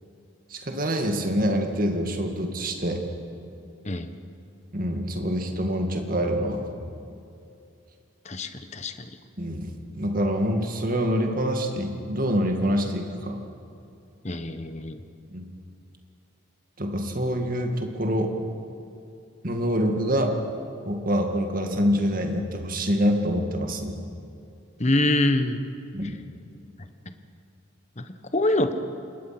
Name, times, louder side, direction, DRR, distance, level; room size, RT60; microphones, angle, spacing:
voice 1, 0.5-3.1 4.7-6.7 9.4-13.4 15.3-15.4 16.8-18.3 19.4-20.3 20.9-24.0 25.9-26.2, equal, 40° right, 3 dB, 2.2 m, -26 dB
voice 2, 8.2-8.9 14.2-15.0 24.8-25.6 28.0-28.7, left 1 dB, 35° left, 9 dB, 1.2 m, -25 dB
26.5 x 21.5 x 6.1 m, 2.6 s
head